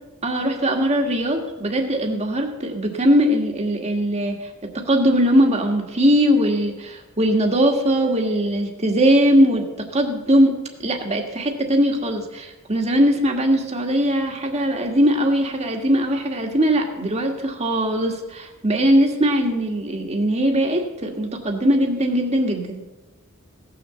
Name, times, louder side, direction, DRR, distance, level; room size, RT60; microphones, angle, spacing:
voice 1, 0.2-4.5 4.7-10.5 10.8-22.8, equal, 30° right, 2 dB, 1.9 m, -20 dB
17.0 x 6.9 x 7.0 m, 1.0 s
head